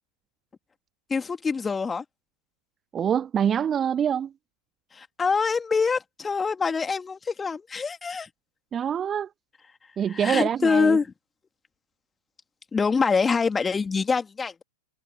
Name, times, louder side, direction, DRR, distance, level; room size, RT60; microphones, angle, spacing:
voice 1, 1.1-2.0 4.9-8.3 10.1-11.1 12.7-14.6, left 5 dB, 15° left, 3.0 m, -25 dB
voice 2, 2.9-4.3 8.7-9.3 10.0-11.0, right 8 dB, 25° right, 0.8 m, -25 dB
figure-of-eight pair, 90°, 0 cm